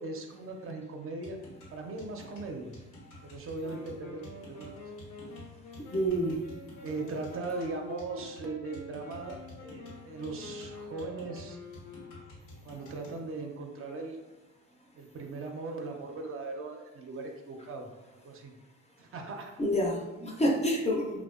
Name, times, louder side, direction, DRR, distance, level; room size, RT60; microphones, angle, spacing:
voice 1, 0.0-1.4 1.7-2.7 3.2-4.7 6.8-11.6 12.6-14.2 14.9-17.9 18.1-18.5 19.0-19.5, right 3 dB, 45° right, 2 dB, 0.4 m, -39 dB
sound 1, 1.2-13.2, left 1 dB, 90° left, 0.9 m, -50 dB
Wind instrument woodwind instrument, 3.6-12.6, left 3 dB, 65° left, 0.6 m, -47 dB
voice 2, 5.9-6.4 19.6-21.2, equal, 20° left, 0 dB, 0.4 m, -28 dB
2.6 x 2.1 x 2.3 m, 1.1 s
cardioid pair, 90°, 30 cm